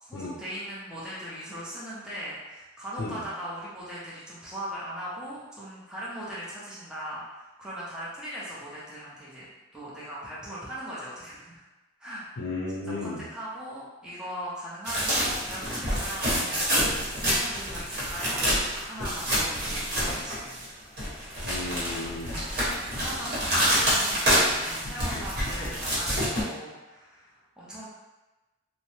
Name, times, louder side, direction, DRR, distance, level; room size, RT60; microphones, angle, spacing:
voice 1, 0.0-9.5 9.7-11.6 12.0-12.2 12.8-20.6 22.8-24.3 24.6-27.9, equal, 5° right, -9 dB, 0.5 m, -39 dB
voice 2, 12.4-13.2 21.4-22.4 25.1-25.2, left 2 dB, 70° left, -4 dB, 0.5 m, -34 dB
sound 1, 14.8-20.7 21.0-26.4, equal, 55° right, 1.0 m, -27 dB
3.0 x 2.0 x 2.7 m, 1.1 s
head